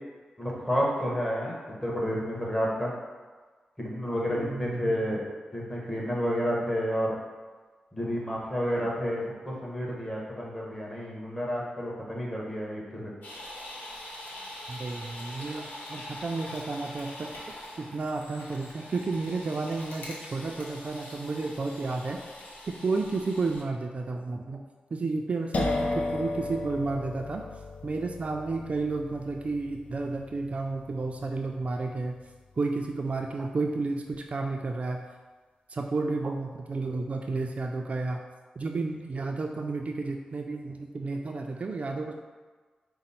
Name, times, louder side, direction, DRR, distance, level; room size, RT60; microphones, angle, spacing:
voice 1, 0.4-2.9 3.8-5.3 5.5-7.2 7.9-13.1, equal, 15° left, -4 dB, 1.3 m, -30 dB
voice 2, 4.3-5.2 14.7-17.3 17.8-22.2 22.7-24.6 24.9-27.4 27.8-32.2 32.6-35.0 35.7-38.2 38.6-42.1, right 3 dB, 50° right, 2 dB, 0.3 m, -32 dB
sound 1, 13.2-23.6, left 1 dB, 90° left, 0.9 m, -43 dB
sound 2, 25.5-33.1, left 2 dB, 60° left, 0.4 m, -36 dB
5.0 x 2.0 x 4.2 m, 1.4 s
cardioid pair, 60°, 3 cm